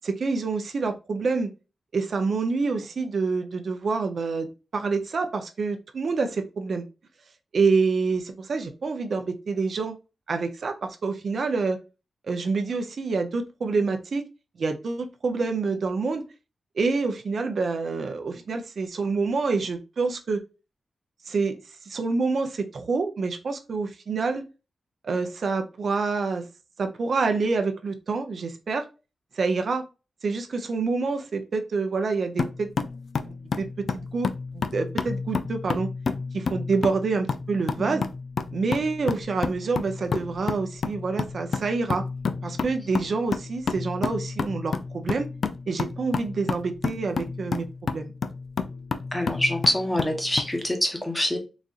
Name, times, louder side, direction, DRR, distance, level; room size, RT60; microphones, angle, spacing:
voice 1, 0.0-1.5 1.9-6.8 7.5-10.0 10.3-11.8 12.2-14.2 14.6-16.2 16.8-20.4 21.3-21.6 21.8-24.4 25.0-26.4 26.8-28.9 29.3-29.8 30.2-32.7 33.2-33.7 33.9-35.9 36.3-38.0 38.5-42.0 42.4-45.3 45.7-48.1, right 4 dB, 60° right, 6 dB, 0.5 m, -27 dB
sound 1, 32.4-50.5, left 5 dB, 65° left, 0.3 m, -30 dB
voice 2, 49.1-51.4, left 1 dB, 15° left, 3 dB, 0.9 m, -25 dB
4.0 x 2.5 x 2.4 m, 0.30 s
wide cardioid pair, 100°, 0 cm